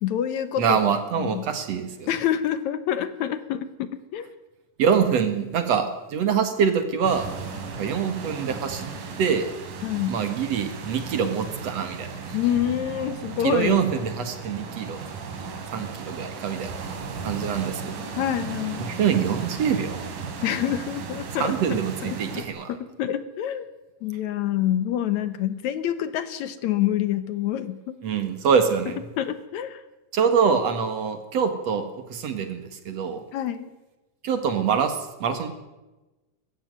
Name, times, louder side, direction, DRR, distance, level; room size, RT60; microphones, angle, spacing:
voice 1, 0.0-0.8 1.2-1.5 2.1-4.3 9.8-10.2 12.3-13.8 18.2-18.8 20.4-21.5 22.0-22.4 22.7-23.7 24.0-28.0 29.2-29.8 33.3-33.7, left 11 dB, 70° left, 13 dB, 2.1 m, -27 dB
voice 2, 0.6-2.1 4.8-7.3 7.7-8.9 9.2-9.5 10.1-12.4 13.4-15.0 15.7-16.7 17.2-18.0 18.9-20.0 21.4-22.7 28.0-29.0 30.1-33.2 34.2-35.5, right 6 dB, 60° right, 8 dB, 2.6 m, -24 dB
sound 1, 7.0-22.5, right 5 dB, 90° right, 4.0 m, -36 dB
20.0 x 15.0 x 9.3 m, 1.1 s
omnidirectional pair, 3.6 m